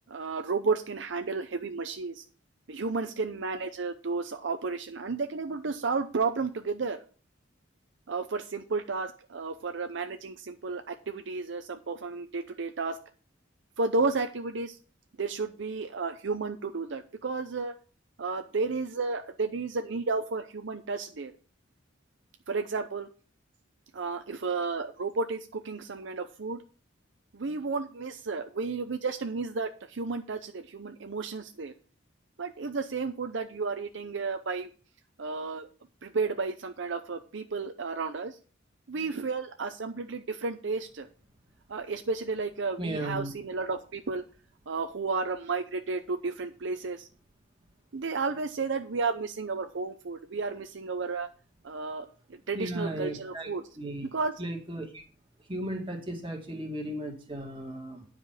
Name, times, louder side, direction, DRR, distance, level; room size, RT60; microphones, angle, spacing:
voice 1, 0.1-2.2 2.7-7.0 8.1-13.0 13.8-14.8 15.2-17.7 18.2-21.3 22.5-23.1 23.9-26.6 27.3-31.7 32.4-34.7 35.2-35.7 36.0-38.4 38.9-41.1 41.7-44.2 44.7-47.1 47.9-51.3 51.6-53.6 54.1-54.3, right 4 dB, 70° right, 7 dB, 0.7 m, -32 dB
voice 2, 42.8-43.3 52.5-53.5 53.8-54.1 54.4-55.0 55.5-58.1, right 1 dB, 25° right, 1 dB, 2.0 m, -35 dB
9.7 x 5.2 x 5.6 m, 0.38 s
head